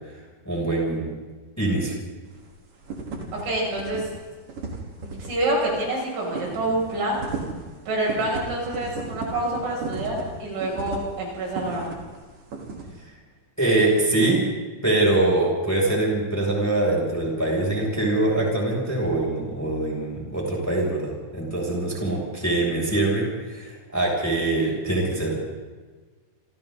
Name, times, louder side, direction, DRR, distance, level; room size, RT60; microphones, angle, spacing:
voice 1, 0.5-1.1 1.6-1.9 13.6-14.4 14.8-25.5, right 2 dB, 5° left, -3 dB, 6.9 m, -23 dB
sound 1, 2.2-2.5 2.8-3.4 3.7-4.0 4.3-12.2 12.5-12.8, right 4 dB, 45° right, 4.8 m, -35 dB
voice 2, 3.3-4.1 5.0-7.2 7.9-11.9, right 1 dB, 70° right, -3 dB, 9.7 m, -27 dB
30.0 x 27.5 x 4.1 m, 1.4 s
omnidirectional pair, 5.6 m